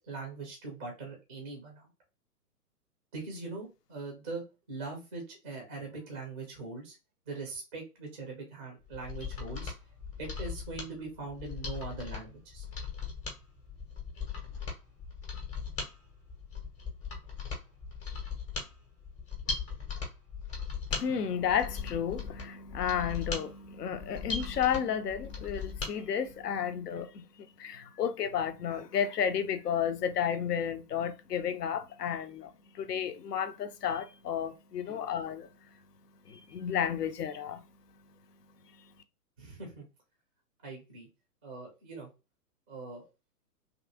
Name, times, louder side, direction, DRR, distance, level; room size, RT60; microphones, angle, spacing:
voice 1, 0.0-1.9 3.1-4.4 4.7-7.0 7.3-9.7 10.2-12.7 34.8-35.0 39.4-39.8 40.6-41.1 41.4-42.1 42.7-43.0, right 3 dB, 10° right, 0.4 m, -41 dB
Mechanisms, 8.9-25.9 26.3-26.4, left 5 dB, 15° left, 0.7 m, -39 dB
voice 2, 20.9-32.5 32.7-35.5 36.3-37.6, left 8 dB, 80° left, 0.7 m, -32 dB
2.8 x 2.5 x 2.7 m
figure-of-eight pair, 120°, 47 cm